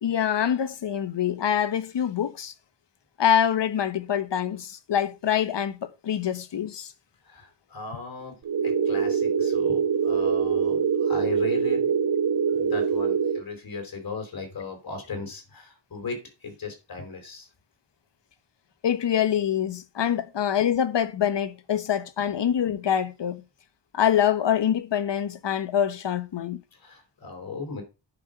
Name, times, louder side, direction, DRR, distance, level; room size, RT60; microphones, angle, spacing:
voice 1, 0.0-2.5 3.2-6.9 18.8-23.4 23.9-26.6, left 9 dB, 65° left, 1.1 m, -25 dB
voice 2, 7.3-8.4 8.6-11.9 12.5-17.5 20.0-20.1 26.8-27.8, left 4 dB, 50° left, 4.4 m, -37 dB
sound 1, 8.5-13.4, right 6 dB, 50° right, 1.0 m, -24 dB
10.5 x 5.3 x 5.8 m
wide cardioid pair, 130°, 46 cm